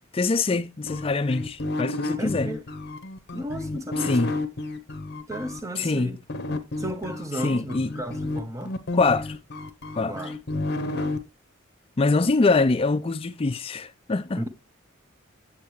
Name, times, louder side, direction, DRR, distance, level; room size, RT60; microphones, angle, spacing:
voice 1, 0.1-2.5 4.1-4.3 5.8-6.1 7.4-7.9 8.9-9.4 10.0-10.2 12.0-14.4, left 3 dB, 25° left, 0.4 m, -24 dB
sound 1, 0.9-5.6 6.3-11.2, left 2 dB, 50° left, 0.8 m, -31 dB
voice 2, 2.2-2.6 3.3-4.4 5.3-6.2 6.8-8.8 10.1-10.3 10.8-11.2 14.4-14.5, equal, 15° right, 0.7 m, -34 dB
8.7 x 7.3 x 3.1 m
head